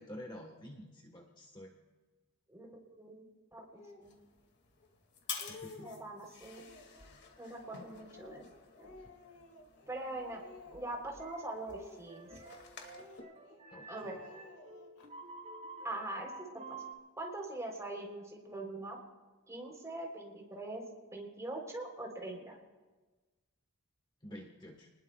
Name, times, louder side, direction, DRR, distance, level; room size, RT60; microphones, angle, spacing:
voice 1, 0.0-1.7 5.5-5.9 9.0-9.1 13.7-14.1 24.2-24.9, equal, 20° left, 2 dB, 1.3 m, -49 dB
voice 2, 2.5-3.7 4.0-4.2 5.8-6.6 7.4-8.4 8.8-9.0 9.9-10.4 10.7-12.3 13.9-14.1 15.8-16.8 17.2-19.0 19.5-20.8 21.1-22.6, right 2 dB, 15° right, 0 dB, 3.4 m, -43 dB
Speech, 3.8-4.1 4.8-4.9 5.2-6.1 6.5-7.1 7.6-9.9 10.2-11.1 11.6-12.6 12.9-13.6 13.9-15.1, left 3 dB, 85° left, 2.3 m, -54 dB
sound 1, 4.0-13.2, left 6 dB, 50° left, 2.1 m, -51 dB
sound 2, 11.2-11.6 12.1-16.9, right 3 dB, 30° right, 2.3 m, -50 dB
29.5 x 20.5 x 2.3 m, 1.3 s
head